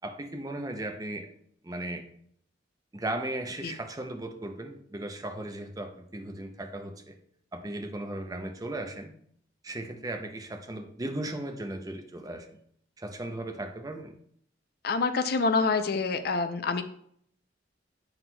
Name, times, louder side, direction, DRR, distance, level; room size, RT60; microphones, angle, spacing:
voice 1, 0.0-1.3 1.6-2.0 2.9-7.2 7.5-9.1 9.6-12.5 13.0-14.2, right 1 dB, 20° right, 5 dB, 0.5 m, -36 dB
voice 2, 14.8-16.8, left 4 dB, 55° left, 10 dB, 0.4 m, -26 dB
7.6 x 5.8 x 2.2 m, 0.65 s
head